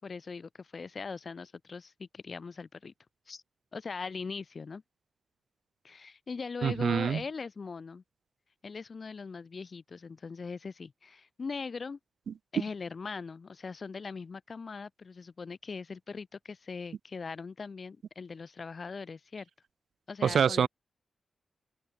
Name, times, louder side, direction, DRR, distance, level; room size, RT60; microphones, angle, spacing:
voice 1, 0.0-2.9 3.3-3.4 3.7-4.8 5.8-8.0 8.6-12.0 12.5-19.5 20.1-20.7, left 4 dB, 40° left, 4.3 m, -40 dB
voice 2, 6.6-7.2 12.3-12.4 20.2-20.7, right 7 dB, 75° right, 1.0 m, -26 dB
open air
wide cardioid pair, 135°, 0 cm